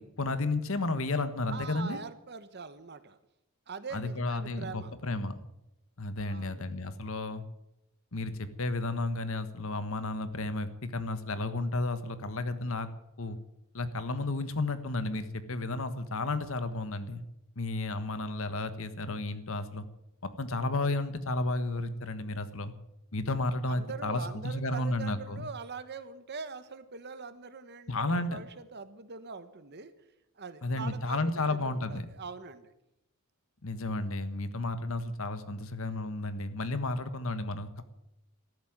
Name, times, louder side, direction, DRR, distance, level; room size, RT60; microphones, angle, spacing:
voice 1, 0.0-2.0 3.9-5.4 6.0-7.4 8.1-12.9 13.2-13.4 13.7-17.2 17.6-19.8 20.2-22.7 23.1-25.4 27.9-28.4 30.6-32.0 33.6-37.8, left 2 dB, 65° left, 11 dB, 1.4 m, -32 dB
voice 2, 1.5-3.2 3.7-4.9 6.2-6.7 23.7-29.9 30.4-32.7, right 4 dB, 50° right, 12 dB, 1.3 m, -43 dB
13.5 x 11.5 x 9.4 m, 0.86 s
head